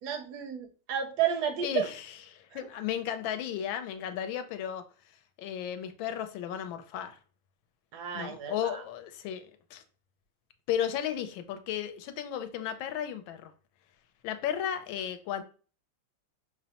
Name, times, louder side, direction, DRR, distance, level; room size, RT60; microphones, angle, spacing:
voice 1, 0.0-1.9 2.5-2.7 7.9-8.8, right 9 dB, 75° right, 0.9 m, -32 dB
voice 2, 2.3-4.8 5.4-7.2 8.1-9.8 10.7-13.5 14.2-15.4, left 10 dB, 80° left, 1.3 m, -34 dB
5.5 x 2.1 x 2.8 m
omnidirectional pair, 2.2 m